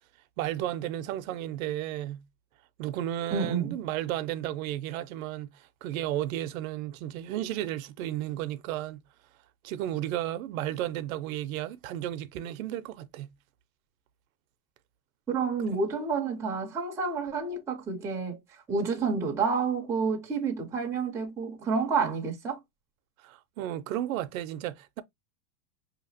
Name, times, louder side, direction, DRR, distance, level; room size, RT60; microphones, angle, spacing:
voice 1, 0.4-2.2 2.8-9.0 9.6-13.3 15.7-15.8 23.2-25.0, right 12 dB, 60° right, 0.6 m, -33 dB
voice 2, 3.3-3.7 15.3-18.4 18.7-22.6, right 5 dB, 5° right, 0.5 m, -29 dB
5.6 x 2.9 x 2.6 m
supercardioid pair, 155°, 47 cm